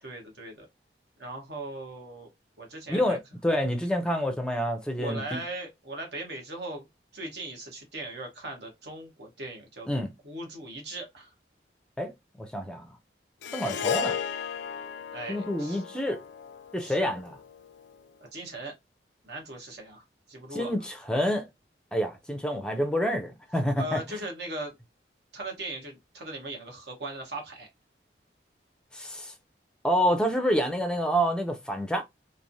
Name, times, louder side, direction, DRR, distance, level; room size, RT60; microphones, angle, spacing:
voice 1, 0.0-0.7 1.2-2.3 2.6-3.2 5.0-6.9 7.1-11.3 15.1-15.8 16.8-17.1 18.3-18.7 19.2-20.7 23.8-24.7 25.3-27.7, right 2 dB, 70° right, 1.1 m, -39 dB
voice 2, 2.9-5.4 9.9-10.1 12.0-12.1 12.4-12.9 13.5-14.2 15.3-16.2 16.7-17.4 20.5-21.5 21.9-24.0 28.9-29.3 29.8-32.0, equal, 5° left, 0.4 m, -28 dB
Harp, 13.4-17.8, left 8 dB, 80° left, 0.3 m, -35 dB
3.1 x 2.0 x 2.6 m
head